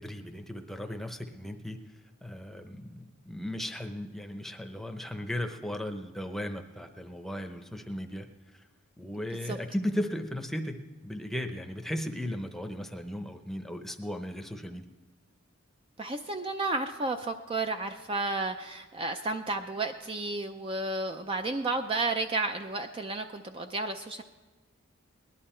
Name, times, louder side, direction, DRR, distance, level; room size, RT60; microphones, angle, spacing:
voice 1, 0.0-1.8 2.2-8.3 8.5-8.6 9.0-14.8, left 1 dB, ahead, 5 dB, 0.8 m, -36 dB
voice 2, 16.0-24.2, right 2 dB, 25° right, 6 dB, 0.4 m, -32 dB
19.0 x 11.5 x 4.4 m, 1.3 s
head